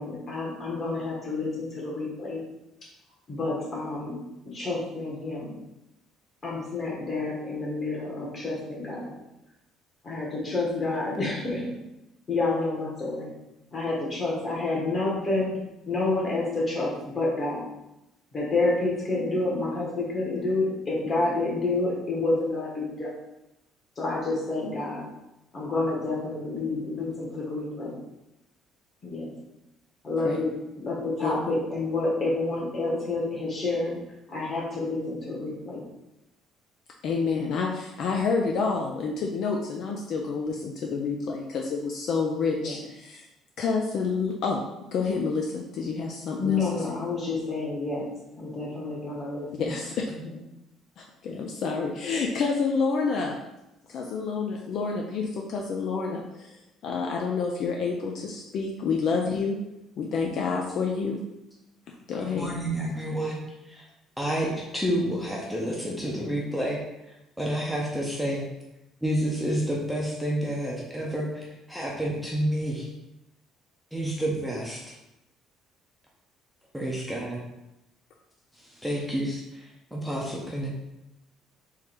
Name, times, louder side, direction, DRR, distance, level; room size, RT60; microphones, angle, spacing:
voice 1, 0.0-2.4 3.3-4.2 4.4-5.6 6.4-9.2 10.0-11.7 12.3-13.3 13.7-15.6 15.9-17.6 18.3-23.1 24.0-25.1 25.5-28.0 29.0-29.3 30.0-30.5 30.8-34.0 34.3-35.8 42.5-42.8 46.4-48.1 48.3-49.7 50.1-50.3, left 2 dB, 30° left, -4 dB, 1.5 m, -29 dB
voice 2, 37.0-43.2 43.6-44.6 44.9-47.0 49.6-50.0 51.0-53.4 53.9-56.6 56.8-59.6 60.0-61.2 62.1-62.5, left 4 dB, 55° left, 0 dB, 0.5 m, -28 dB
voice 3, 62.2-63.9 64.2-68.4 69.0-72.9 73.9-74.8 76.7-77.4 78.6-80.7, right 1 dB, ahead, -3 dB, 0.7 m, -30 dB
3.7 x 3.1 x 4.6 m, 0.91 s
cardioid pair, 150°, 0 cm